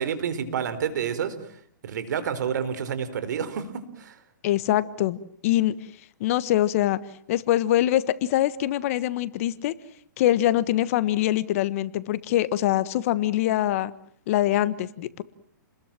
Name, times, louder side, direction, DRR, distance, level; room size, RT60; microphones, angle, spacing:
voice 1, 0.0-1.3 1.8-4.2, right 7 dB, 65° right, 12 dB, 4.5 m, -29 dB
voice 2, 4.4-5.7 6.2-7.0 7.3-9.7 10.2-13.9 14.3-15.2, left 13 dB, 45° left, 16 dB, 1.4 m, -23 dB
30.0 x 21.0 x 7.7 m, 0.64 s
hypercardioid pair, 145°, 10 cm